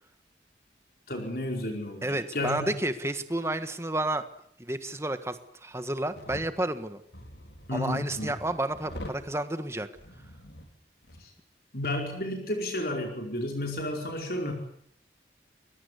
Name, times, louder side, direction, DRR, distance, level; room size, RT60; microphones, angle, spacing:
voice 1, 1.1-2.7 7.7-8.3 11.2-11.3 11.7-14.5, left 1 dB, 55° left, 2 dB, 4.9 m, -32 dB
voice 2, 2.0-4.2 4.6-7.0 7.7-9.9, right 1 dB, 15° right, 10 dB, 1.6 m, -31 dB
sound 1, 6.2-6.5 7.1-9.3 9.9-10.7 11.0-11.2, left 1 dB, 85° left, 4.6 m, -44 dB
28.5 x 22.0 x 8.3 m, 0.65 s
head